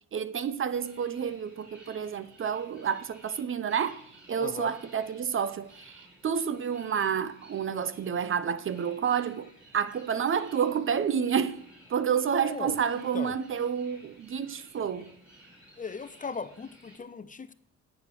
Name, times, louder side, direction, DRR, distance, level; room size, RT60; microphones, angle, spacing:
voice 1, 0.1-4.0 4.3-9.5 9.7-11.6 11.9-15.1, right 7 dB, 45° right, 0.7 m, -29 dB
sound 1, 0.7-17.0, right 1 dB, 5° right, 4.5 m, -56 dB
voice 2, 4.4-4.7 12.4-13.4 15.8-17.5, left 5 dB, 25° left, 0.6 m, -38 dB
9.8 x 7.1 x 6.6 m
cardioid pair, 90°, 30 cm